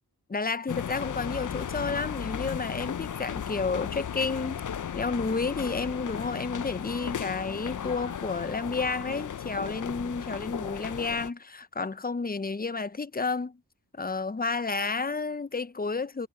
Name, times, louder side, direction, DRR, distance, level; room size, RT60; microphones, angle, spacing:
voice 1, 0.3-4.6 4.9-13.6 13.9-16.3, left 4 dB, 25° left, 0.8 m, -31 dB
sound 1, 0.7-11.3, left 8 dB, 50° left, 0.7 m, -35 dB
cardioid pair, 45°, 39 cm